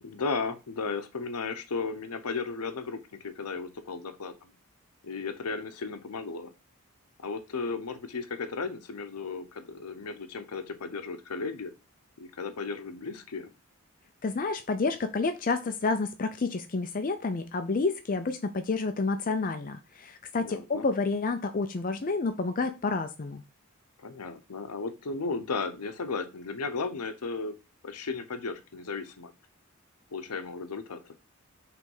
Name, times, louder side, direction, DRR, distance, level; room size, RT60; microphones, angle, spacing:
voice 1, 0.0-4.5 5.0-6.5 7.2-11.7 12.2-13.5 20.4-20.8 24.0-27.5 27.8-29.3 30.1-31.2, left 4 dB, 90° left, 8 dB, 0.8 m, -35 dB
voice 2, 14.2-23.4, left 3 dB, 40° left, 8 dB, 0.5 m, -29 dB
6.1 x 3.3 x 5.4 m, 0.28 s
head